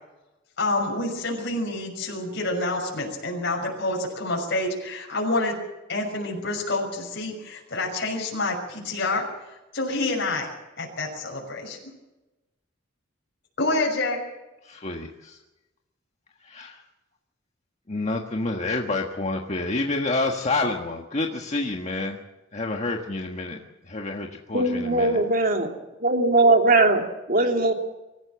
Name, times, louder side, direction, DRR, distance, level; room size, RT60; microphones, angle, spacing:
voice 1, 0.6-5.6 5.9-10.5 10.8-11.8 13.6-14.2, left 2 dB, 60° left, -1 dB, 6.1 m, -28 dB
voice 2, 14.6-15.4 16.4-16.8 17.9-22.2 22.5-23.6 23.9-25.2, left 2 dB, 35° left, 1 dB, 1.6 m, -28 dB
voice 3, 24.5-25.7 26.0-27.0 27.3-27.7, right 2 dB, 45° right, 3 dB, 2.9 m, -19 dB
25.0 x 14.5 x 7.5 m, 1.0 s
head